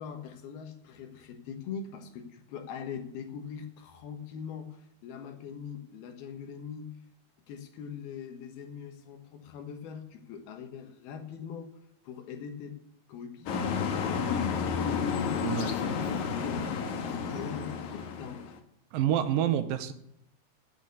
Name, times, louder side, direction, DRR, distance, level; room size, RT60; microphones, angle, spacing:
voice 1, 0.0-6.9 7.5-11.8 12.0-12.8 13.1-16.8 17.0-18.5, left 7 dB, 80° left, 6 dB, 3.3 m, -42 dB
sound 1, 13.5-18.6, left 6 dB, 65° left, 2.3 m, -31 dB
voice 2, 18.9-19.9, right 10 dB, 75° right, 10 dB, 2.4 m, -27 dB
9.0 x 8.7 x 8.4 m, 0.75 s
omnidirectional pair, 4.3 m